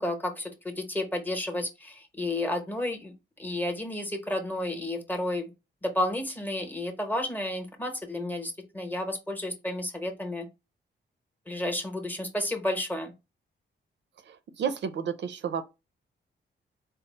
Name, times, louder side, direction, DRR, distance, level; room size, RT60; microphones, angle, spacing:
voice 1, 0.0-5.5 5.8-10.5 11.5-13.1, left 1 dB, 10° left, 0.8 m, -31 dB
voice 2, 14.3-15.7, right 7 dB, 70° right, 0.5 m, -32 dB
4.0 x 2.0 x 4.0 m
wide cardioid pair, 145°, 19 cm